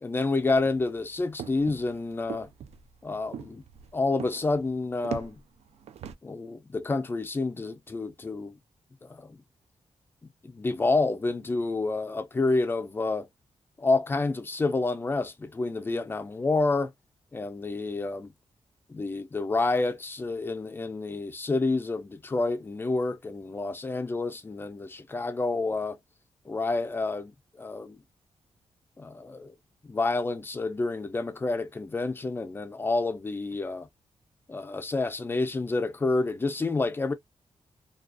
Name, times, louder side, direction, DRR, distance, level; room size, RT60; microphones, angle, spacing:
voice 1, 0.0-2.5 3.0-3.6 3.9-5.4 6.2-8.5 9.0-9.4 10.4-13.3 13.8-16.9 17.3-18.3 18.9-26.0 26.5-28.0 29.0-29.5 29.8-33.9 34.5-37.1, left 3 dB, 20° left, 0.3 m, -29 dB
sound 1, 0.5-6.1, right 8 dB, 75° right, 0.4 m, -42 dB
2.4 x 2.3 x 2.3 m
wide cardioid pair, 160°, 11 cm